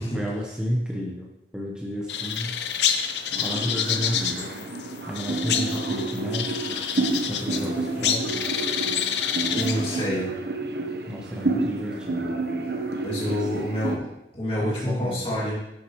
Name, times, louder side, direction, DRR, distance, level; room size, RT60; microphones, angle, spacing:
voice 1, 0.1-2.6 3.4-4.5 5.1-6.8 7.2-8.5 11.1-12.3 13.2-13.5 14.6-15.5, equal, 5° right, -2 dB, 0.8 m, -32 dB
sound 1, 2.1-10.1, left 8 dB, 80° left, 0.6 m, -28 dB
sound 2, 3.3-14.0, right 3 dB, 70° right, 0.9 m, -30 dB
voice 2, 9.5-10.3 13.0-15.6, left 1 dB, 30° left, -6 dB, 2.2 m, -28 dB
9.9 x 6.6 x 3.0 m, 0.89 s
head